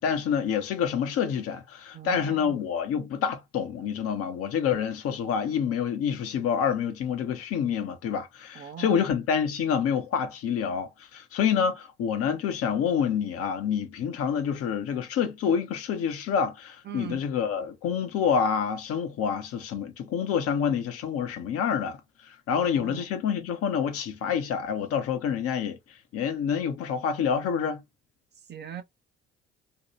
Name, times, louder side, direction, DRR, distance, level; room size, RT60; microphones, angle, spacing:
voice 1, 0.0-25.8 26.1-27.8, left 7 dB, 55° left, 0.8 m, -27 dB
voice 2, 1.9-2.6 8.5-9.1 16.9-17.2 22.5-23.1 28.5-28.8, right 9 dB, 35° right, 0.7 m, -40 dB
2.7 x 2.2 x 3.1 m
figure-of-eight pair, 45°, 29 cm